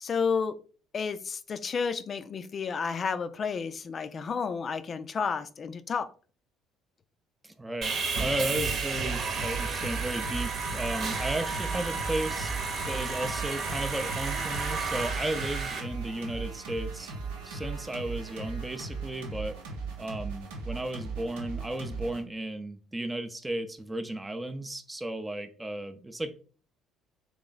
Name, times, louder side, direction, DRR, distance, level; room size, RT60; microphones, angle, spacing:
voice 1, 0.0-0.6 0.9-6.1, left 5 dB, 40° left, 0.4 m, -31 dB
voice 2, 7.4-12.5 12.9-17.1 17.4-19.5 20.0-26.3, right 1 dB, 15° right, 0.5 m, -34 dB
Sawing, 7.8-15.8, right 4 dB, 50° right, 1.0 m, -32 dB
sound 1, 8.5-22.2, right 4 dB, 75° right, 0.8 m, -38 dB
3.2 x 3.0 x 3.8 m
hypercardioid pair, 55°, 0 cm